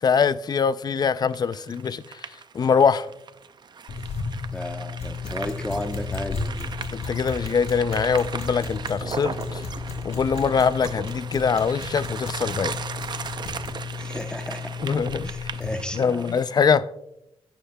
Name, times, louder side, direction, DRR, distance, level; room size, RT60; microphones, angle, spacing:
voice 1, 0.0-2.2 2.5-3.1 6.9-9.6 10.0-12.8 14.8-15.3 15.9-16.9, left 6 dB, 40° left, 0.4 m, -23 dB
sound 1, 1.3-16.8, right 6 dB, 45° right, 0.5 m, -37 dB
sound 2, 3.9-15.8, left 5 dB, 85° left, 2.7 m, -34 dB
voice 2, 4.5-6.8 14.0-14.8 15.2-16.4, left 1 dB, 10° left, 0.8 m, -34 dB
sound 3, 6.6-11.5, right 2 dB, 15° right, 3.2 m, -44 dB
12.0 x 9.9 x 2.2 m
cardioid pair, 105°, 11 cm